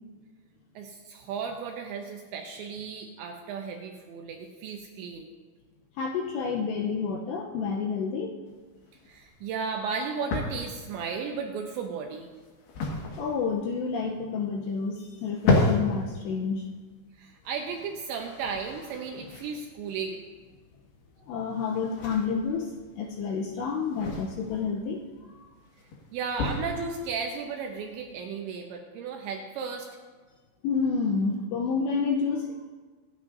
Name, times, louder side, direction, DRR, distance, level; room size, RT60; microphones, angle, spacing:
voice 1, 0.8-5.3 9.1-12.3 17.2-20.2 26.1-29.9, right 5 dB, 75° right, 2 dB, 2.8 m, -35 dB
voice 2, 6.0-8.3 13.2-16.7 21.3-25.5 30.6-32.7, left 5 dB, 80° left, 1 dB, 2.6 m, -29 dB
sound 1, 8.5-28.2, left 2 dB, 60° left, 3.4 m, -34 dB
25.5 x 9.7 x 2.7 m, 1.4 s
omnidirectional pair, 5.8 m